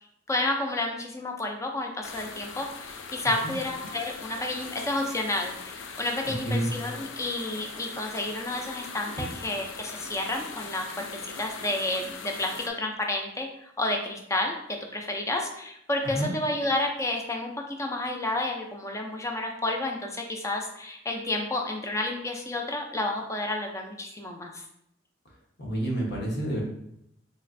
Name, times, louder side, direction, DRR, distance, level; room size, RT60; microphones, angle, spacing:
voice 1, 0.3-10.9 11.4-14.5 14.9-17.5 17.8-24.6, left 2 dB, 15° left, 2 dB, 0.4 m, -30 dB
sound 1, 2.0-12.7, left 5 dB, 75° left, 0.4 m, -41 dB
voice 2, 6.2-6.7 9.2-9.3 16.1-16.3 25.6-26.6, right 1 dB, 60° left, -2 dB, 1.1 m, -29 dB
4.1 x 3.0 x 2.6 m, 0.75 s
head